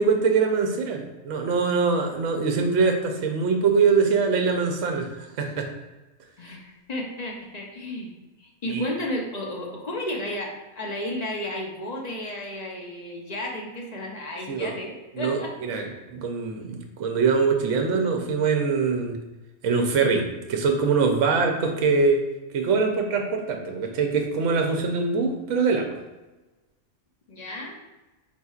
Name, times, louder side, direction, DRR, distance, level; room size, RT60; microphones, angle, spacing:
voice 1, 0.0-5.7 8.6-8.9 14.5-14.8 15.2-19.2 19.6-22.2 22.5-26.0, right 4 dB, 70° right, 3 dB, 0.9 m, -23 dB
voice 2, 6.4-8.1 8.4-15.9 27.3-27.8, left 1 dB, 45° left, -1 dB, 0.6 m, -33 dB
4.4 x 4.0 x 2.4 m, 1.1 s
omnidirectional pair, 1.4 m